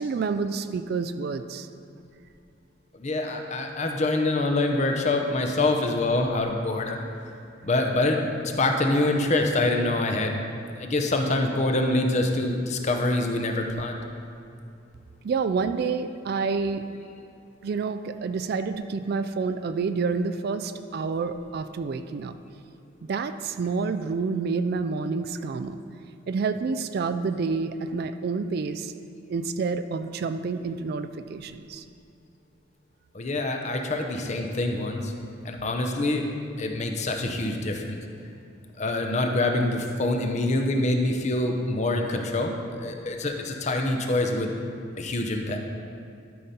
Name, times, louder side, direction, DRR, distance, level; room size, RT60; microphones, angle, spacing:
voice 1, 0.0-1.7 15.2-16.9 17.6-22.3 23.0-25.8 26.3-28.9 29.3-31.8, right 4 dB, 50° right, 10 dB, 0.3 m, -28 dB
voice 2, 2.9-7.0 7.6-10.4 10.8-14.0 33.1-35.1 35.4-36.3 36.6-38.0 38.8-44.5 45.0-45.6, left 2 dB, 35° left, 3 dB, 0.7 m, -25 dB
12.5 x 5.4 x 4.3 m, 2.5 s
head